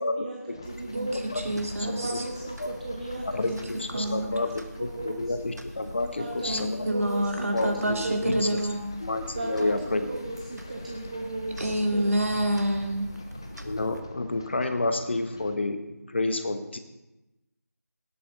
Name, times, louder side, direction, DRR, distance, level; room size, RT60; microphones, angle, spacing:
voice 1, 0.0-0.4 0.6-1.3 1.8-3.4 3.9-4.4 4.8-5.2 6.2-8.6 9.3-12.1, right 2 dB, 25° right, -1 dB, 0.8 m, -35 dB
sound 1, 0.5-15.6, left 2 dB, 15° left, 0.5 m, -47 dB
sound 2, 0.6-14.0, equal, 90° right, 1.2 m, -44 dB
voice 2, 0.9-2.2 3.4-3.6 3.9-4.3 6.5-8.8 11.6-13.1, right 1 dB, 60° right, 2 dB, 2.2 m, -28 dB
voice 3, 1.9-2.2 2.6-2.7 3.2-6.8 7.5-8.6 9.0-10.1 13.6-15.8 16.1-16.8, left 2 dB, 45° left, 8 dB, 0.9 m, -30 dB
17.5 x 8.4 x 3.9 m, 1.0 s
figure-of-eight pair, 165°, 9 cm